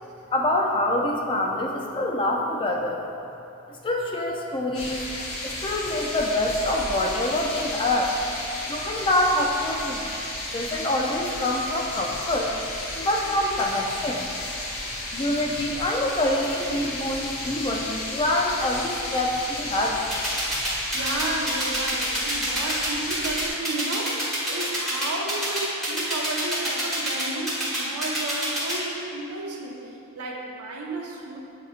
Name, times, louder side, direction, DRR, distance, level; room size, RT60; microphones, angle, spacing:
voice 1, 0.3-3.0 3.7-5.0 5.4-8.2 8.7-10.0 10.5-12.5 12.9-14.3 15.1-20.1 20.6-20.8, left 1 dB, 20° left, 1 dB, 0.3 m, -25 dB
sound 1, 4.7-23.5, left 1 dB, 75° left, 0.8 m, -33 dB
sound 2, 20.1-28.7, right 1 dB, ahead, 1.1 m, -27 dB
voice 2, 20.9-31.4, right 2 dB, 90° right, 0 dB, 0.6 m, -33 dB
7.3 x 2.9 x 2.4 m, 2.8 s
head